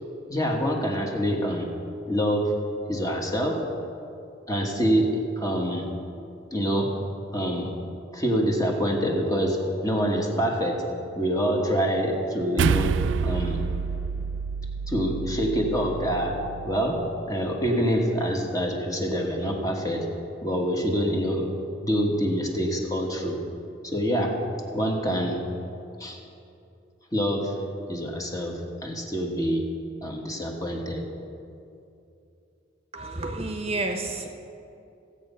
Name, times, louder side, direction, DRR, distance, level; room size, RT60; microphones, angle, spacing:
voice 1, 0.3-1.7 2.1-2.6 2.9-3.7 4.5-5.9 6.5-7.0 7.3-7.7 8.1-10.9 11.2-13.6 14.9-20.1 20.4-21.5 21.8-23.4 23.8-24.4 24.7-25.4 26.0-26.2 27.1-27.6 27.9-29.7 30.0-31.1, equal, 20° left, 0 dB, 1.4 m, -26 dB
sound 1, 12.6-17.1, right 6 dB, 70° right, 0.3 m, -28 dB
voice 2, 32.9-34.3, right 2 dB, 30° right, 3 dB, 1.0 m, -30 dB
16.5 x 8.2 x 5.5 m, 2.6 s
head